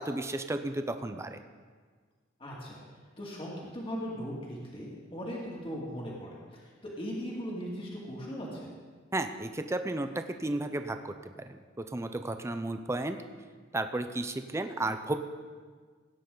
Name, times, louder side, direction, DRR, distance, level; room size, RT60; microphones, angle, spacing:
voice 1, 0.0-1.4 9.1-11.1 11.5-11.6 11.9-13.2 13.7-15.2, right 2 dB, 15° right, 8 dB, 0.5 m, -33 dB
voice 2, 2.4-2.8 3.2-8.7, equal, 30° left, -4 dB, 2.2 m, -39 dB
17.0 x 9.2 x 3.9 m, 1.6 s
head